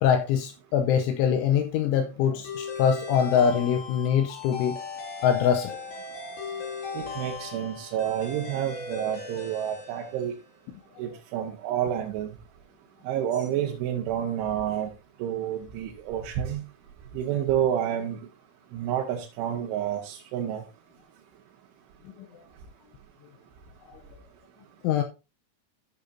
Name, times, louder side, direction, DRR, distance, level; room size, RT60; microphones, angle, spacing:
voice 1, 0.0-4.8 5.2-5.7 24.8-25.0, left 8 dB, 80° left, 6 dB, 2.9 m, -23 dB
sound 1, 2.4-10.6, left 4 dB, 60° left, 4.3 m, -38 dB
voice 2, 6.9-10.4 11.0-12.3 13.0-14.9 15.2-16.6 17.1-18.2 18.7-20.6, right 10 dB, 75° right, 0 dB, 3.3 m, -29 dB
14.0 x 6.8 x 2.7 m, 0.28 s
omnidirectional pair, 5.9 m